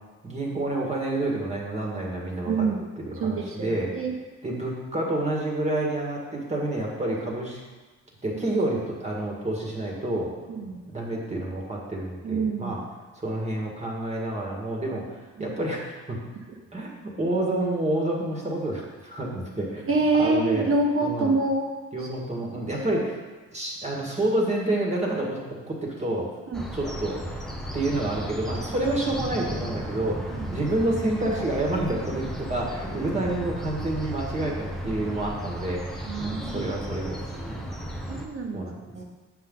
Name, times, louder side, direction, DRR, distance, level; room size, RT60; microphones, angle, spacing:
voice 1, 0.2-2.7 3.0-3.9 4.4-7.6 8.2-10.3 10.9-12.8 13.2-16.2 16.7-19.8 20.2-20.7 21.0-21.4 21.9-23.2 23.5-25.4 25.7-26.3 26.7-27.2 27.7-37.7 38.5-38.9, right 1 dB, 20° right, -2 dB, 1.8 m, -29 dB
voice 2, 2.4-2.8 3.2-4.1 10.5-10.8 12.2-12.8 15.4-15.5 19.9-21.6 22.7-22.9 26.5-26.6 30.3-30.4 36.0-36.7 37.3-37.6 38.1-39.0, right 3 dB, 45° right, 0 dB, 1.4 m, -26 dB
sound 1, 26.5-38.3, equal, ahead, 0.9 m, -35 dB
8.6 x 5.8 x 3.9 m, 1.3 s
cardioid pair, 90°, 30 cm